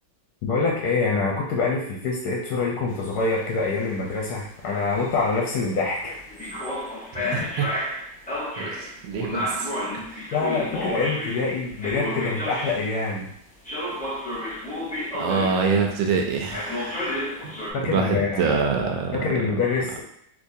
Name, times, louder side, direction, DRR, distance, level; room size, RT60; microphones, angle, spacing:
voice 1, 0.4-6.2 7.2-7.5 10.3-13.3 15.1-15.2 17.7-18.5 19.1-20.0, left 4 dB, 65° left, -2 dB, 1.0 m, -25 dB
sound 1, 2.9-13.1 13.6-16.1 16.5-17.7, left 1 dB, 10° left, 0.3 m, -32 dB
voice 2, 7.1-7.7 8.6-10.2 15.2-17.5 17.8-19.2, right 5 dB, 90° right, 3 dB, 1.4 m, -26 dB
3.8 x 2.8 x 2.6 m, 0.73 s
omnidirectional pair, 2.1 m